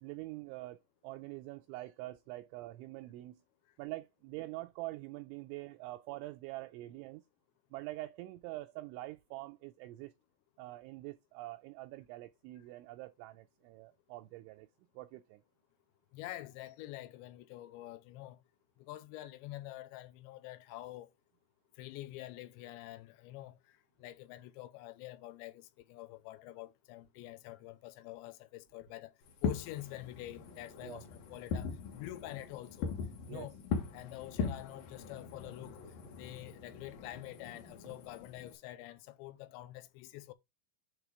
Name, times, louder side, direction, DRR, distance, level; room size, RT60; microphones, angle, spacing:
voice 1, 0.0-3.4 3.8-7.2 7.7-10.1 10.6-14.7 15.0-15.4 30.8-31.0 33.3-33.5, right 18 dB, 85° right, 2.7 m, -45 dB
voice 2, 16.1-18.4 18.8-21.1 21.8-29.1 29.4-32.9 33.3-33.5 33.9-35.8 36.1-40.3, left 16 dB, 85° left, 2.6 m, -47 dB
Fireworks, 29.3-38.5, left 5 dB, 65° left, 2.2 m, -41 dB
8.5 x 3.5 x 4.7 m
omnidirectional pair, 5.9 m